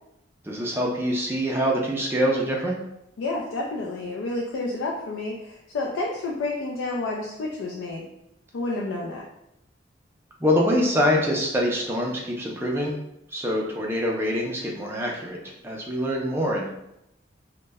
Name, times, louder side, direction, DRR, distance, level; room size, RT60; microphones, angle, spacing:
voice 1, 0.4-2.8 10.4-13.0 13.3-16.7, equal, 10° right, -2 dB, 0.3 m, -25 dB
voice 2, 3.2-8.1 8.5-9.2, left 2 dB, 85° left, -2 dB, 0.4 m, -30 dB
2.1 x 2.0 x 3.3 m, 0.83 s
head